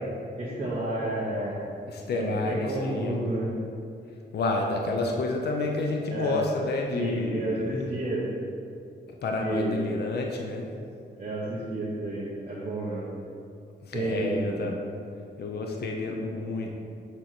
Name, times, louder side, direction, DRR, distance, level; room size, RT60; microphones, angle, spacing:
voice 1, 0.4-1.6 2.1-3.5 6.1-6.3 6.9-8.4 9.3-9.8 11.2-13.0 13.9-14.6, right 1 dB, 35° right, -7 dB, 0.9 m, -30 dB
voice 2, 1.9-3.2 4.3-7.8 9.2-10.7 13.8-14.8 15.4-16.7, left 2 dB, 60° left, 1 dB, 0.6 m, -29 dB
6.8 x 3.0 x 5.7 m, 2.4 s
wide cardioid pair, 170°, 19 cm